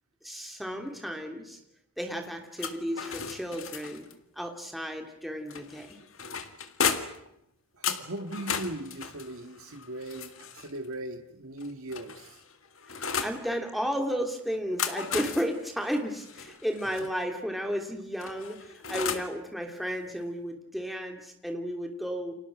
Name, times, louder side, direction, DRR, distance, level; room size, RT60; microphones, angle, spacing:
voice 1, 0.2-1.6 2.0-4.1 4.3-6.0 12.9-22.3, equal, ahead, 3 dB, 2.9 m, -33 dB
sound 1, 2.6-4.1 5.5-7.3 7.8-10.8 11.6-13.4 14.5-17.1 18.2-19.4, left 6 dB, 70° left, 1.9 m, -35 dB
voice 2, 7.7-12.4, right 1 dB, 75° right, 5 dB, 1.9 m, -39 dB
29.5 x 26.0 x 6.2 m, 0.81 s
head